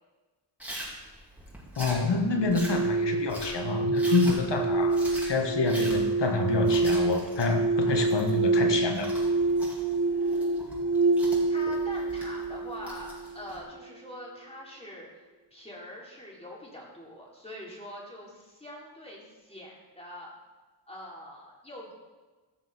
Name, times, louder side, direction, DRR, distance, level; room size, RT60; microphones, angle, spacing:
Chewing mastication, 0.6-13.6, equal, 5° right, 3.7 m, -43 dB
voice 1, 1.8-5.0 5.3-9.1, left 4 dB, 70° left, 4 dB, 1.6 m, -27 dB
sound 1, 2.3-13.4, right 3 dB, 80° right, 2.3 m, -27 dB
voice 2, 11.5-20.3 20.9-21.9, left 1 dB, 15° left, -4 dB, 3.9 m, -44 dB
16.5 x 6.4 x 4.3 m, 1.3 s
cardioid pair, 55°, 44 cm